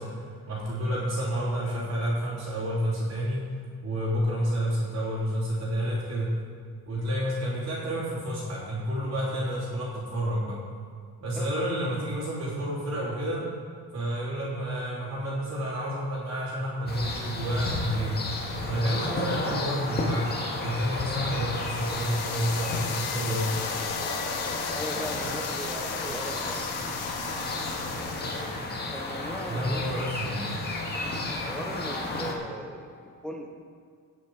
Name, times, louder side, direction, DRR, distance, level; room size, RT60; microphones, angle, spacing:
voice 1, 0.0-3.5 3.8-6.4 6.9-10.6 11.2-13.5 13.9-18.2 18.7-20.3 20.6-23.5 29.5-30.6, equal, 40° right, -8 dB, 3.5 m, -30 dB
sound 1, 16.9-32.3, left 2 dB, 25° left, 2.0 m, -32 dB
sound 2, 21.5-28.7, left 9 dB, 85° left, 1.1 m, -37 dB
voice 2, 24.7-26.6 28.9-30.1 31.4-33.5, right 1 dB, ahead, 1 dB, 1.0 m, -38 dB
18.5 x 6.6 x 4.9 m, 2.2 s
cardioid pair, 155°, 38 cm